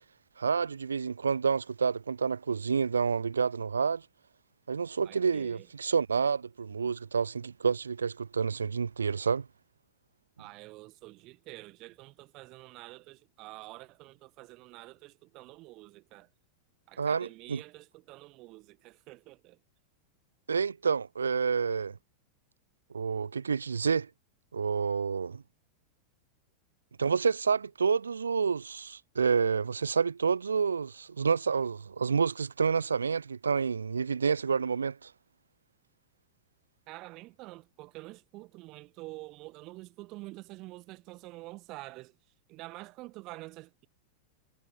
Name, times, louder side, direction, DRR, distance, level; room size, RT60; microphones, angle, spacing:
voice 1, 0.4-4.0 4.7-9.5 17.0-17.6 20.5-22.0 22.9-24.1 24.5-25.4 27.0-35.1, right 5 dB, 75° right, 0.5 m, -29 dB
voice 2, 5.0-5.7 10.4-16.3 16.9-19.6 36.9-42.2 42.5-43.9, right 21 dB, 40° right, 1.8 m, -47 dB
figure-of-eight pair, 90°, 0 cm